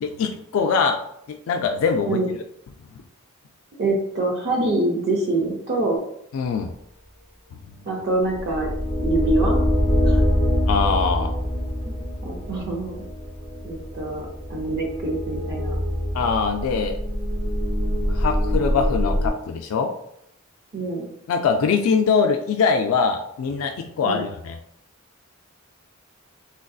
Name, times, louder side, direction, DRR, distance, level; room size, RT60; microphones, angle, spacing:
voice 1, 0.0-1.0 1.3-2.2 2.9-3.0 6.3-6.7 10.7-11.3 16.1-17.0 18.1-19.9 21.3-24.6, left 5 dB, 70° left, 5 dB, 0.3 m, -22 dB
voice 2, 3.8-6.0 7.9-8.7 9.0-9.6 10.0-10.2 11.8-12.0 12.2-13.0 13.6-15.8 20.7-21.1 24.0-24.2, right 2 dB, 50° right, 0 dB, 0.5 m, -25 dB
sound 1, 8.2-19.3, left 1 dB, 10° right, 0.9 m, -24 dB
3.7 x 2.6 x 2.3 m, 0.74 s
head